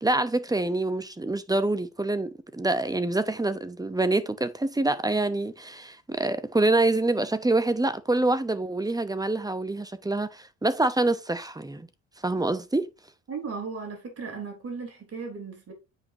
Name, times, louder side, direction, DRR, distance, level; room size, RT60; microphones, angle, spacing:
voice 1, 0.0-11.9 12.2-12.9, right 2 dB, 10° right, 0.8 m, -26 dB
voice 2, 13.3-15.7, right 5 dB, 50° right, 3.6 m, -36 dB
9.1 x 5.6 x 2.8 m
cardioid pair, 90°, 30 cm